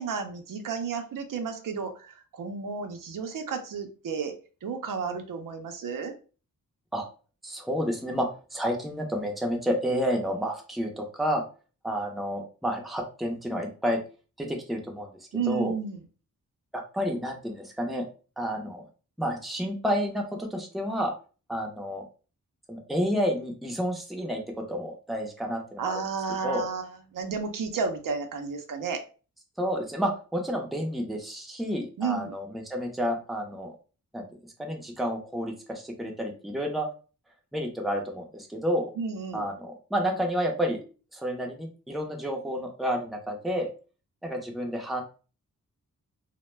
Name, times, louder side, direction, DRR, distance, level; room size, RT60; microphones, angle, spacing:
voice 1, 0.0-4.3 4.6-6.1 15.3-16.0 25.8-29.0 32.0-32.3 39.0-39.5, right 5 dB, 70° right, 5 dB, 0.5 m, -32 dB
voice 2, 7.4-11.4 11.8-14.0 14.4-15.1 15.5-15.7 16.9-18.1 18.4-18.8 19.2-21.1 21.5-22.1 22.7-26.0 26.4-26.7 29.6-33.8 34.1-34.2 34.6-36.9 37.5-38.9 39.3-40.8 41.1-43.7 44.2-45.0, equal, ahead, 1 dB, 0.5 m, -30 dB
2.1 x 2.1 x 3.1 m, 0.36 s
wide cardioid pair, 95°, 34 cm